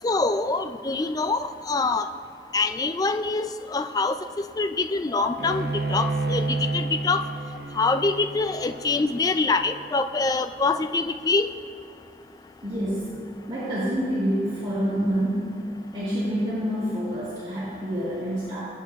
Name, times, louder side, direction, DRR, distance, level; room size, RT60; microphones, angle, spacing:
voice 1, 0.0-2.1 2.5-4.2 4.6-7.3 7.8-11.5, left 3 dB, 20° left, 9 dB, 0.3 m, -25 dB
Bowed string instrument, 5.4-10.7, right 3 dB, 60° right, 0.6 m, -31 dB
voice 2, 12.6-13.2 13.5-15.6 15.9-18.6, equal, 30° right, -10 dB, 2.5 m, -27 dB
21.5 x 9.4 x 2.3 m, 2.7 s
head